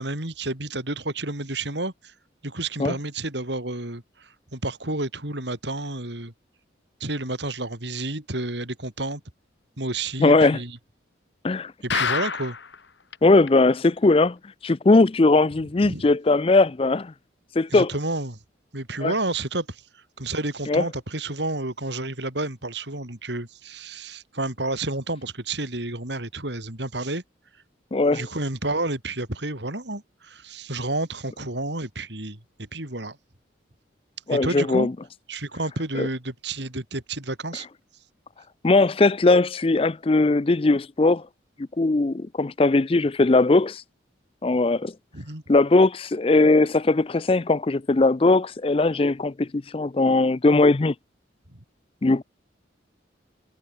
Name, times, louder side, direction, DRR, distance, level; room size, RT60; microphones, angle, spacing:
voice 1, 0.0-2.1 2.4-6.3 7.0-9.2 9.8-10.8 11.8-12.6 15.8-16.1 17.7-18.4 18.7-27.2 28.1-33.2 34.3-34.9 35.3-37.7 45.1-45.4 51.5-51.6, right 2 dB, 70° right, 4.2 m, -30 dB
voice 2, 10.2-10.6 11.4-11.7 13.2-14.4 14.6-17.1 17.6-17.9 19.0-19.1 20.7-20.8 27.9-28.3 34.3-34.9 36.0-36.1 38.6-41.2 41.8-43.8 44.4-44.9 45.5-50.9 52.0-52.2, left 2 dB, 30° left, 0.4 m, -19 dB
sound 1, 11.9-12.8 13.1-13.2 13.5-13.6 14.0-14.1, left 6 dB, 70° left, 1.6 m, -26 dB
head